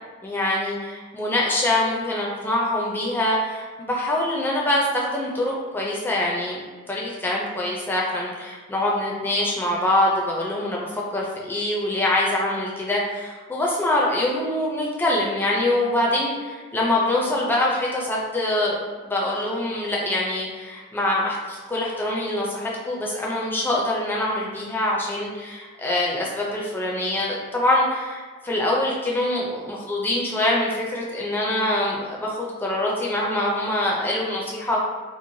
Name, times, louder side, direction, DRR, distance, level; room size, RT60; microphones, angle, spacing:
voice 1, 0.2-6.6 6.9-34.8, left 1 dB, 10° left, -4 dB, 0.4 m, -24 dB
3.0 x 2.5 x 2.6 m, 1.4 s
head